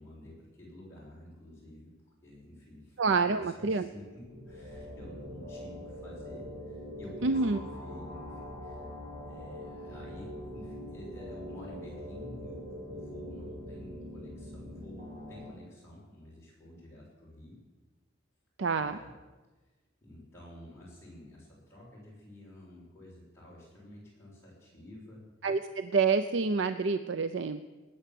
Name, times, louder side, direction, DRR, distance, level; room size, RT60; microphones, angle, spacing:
voice 1, 0.0-1.9 2.2-8.9 9.3-17.5 18.7-19.1 20.0-25.2, left 1 dB, 15° left, -7 dB, 6.5 m, -50 dB
voice 2, 3.0-3.8 7.2-7.6 18.6-19.0 25.4-27.6, right 4 dB, 70° right, 11 dB, 0.5 m, -27 dB
sound 1, 4.0-15.5, equal, 45° right, 3.4 m, -43 dB
19.5 x 9.3 x 7.6 m, 1.2 s
head